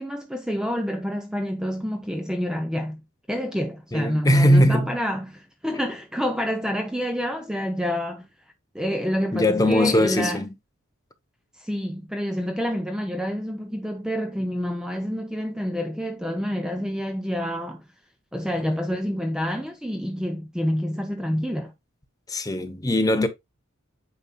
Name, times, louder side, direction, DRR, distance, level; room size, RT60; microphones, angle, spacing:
voice 1, 0.0-3.0 3.3-8.3 8.7-10.4 11.6-17.8 18.3-21.7, equal, 5° right, 0.6 m, -28 dB
voice 2, 3.9-4.9 9.3-10.5 22.3-23.3, equal, 15° left, 0.9 m, -20 dB
8.8 x 5.6 x 2.3 m
head